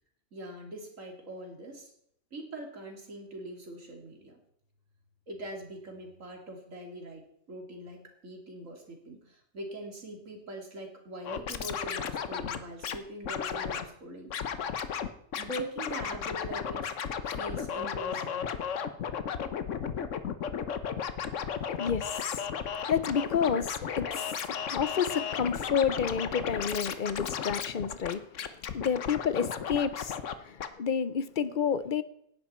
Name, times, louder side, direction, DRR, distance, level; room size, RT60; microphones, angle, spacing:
voice 1, 0.3-1.9 2.3-4.4 5.3-14.3 15.3-16.9 17.3-18.5, right 1 dB, 90° right, 3.1 m, -42 dB
Scratching (performance technique), 11.2-13.0 13.2-13.8 14.3-15.1 15.3-30.3 30.6-30.7, left 7 dB, 75° left, 1.3 m, -34 dB
voice 2, 21.6-32.0, left 7 dB, 45° left, 0.8 m, -30 dB
17.5 x 10.5 x 4.4 m
omnidirectional pair, 1.3 m